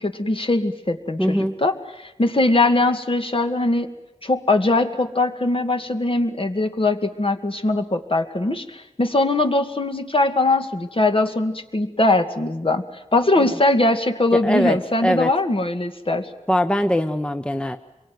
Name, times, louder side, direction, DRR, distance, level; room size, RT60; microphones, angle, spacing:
voice 1, 0.0-3.9 4.2-12.8 13.1-16.3, left 2 dB, 45° left, 6 dB, 2.1 m, -21 dB
voice 2, 1.2-1.6 13.4-13.5 14.4-14.8 15.0-15.3 16.5-17.8, equal, 10° left, 9 dB, 0.9 m, -21 dB
26.5 x 23.0 x 9.3 m, 0.98 s
wide cardioid pair, 65°, 12 cm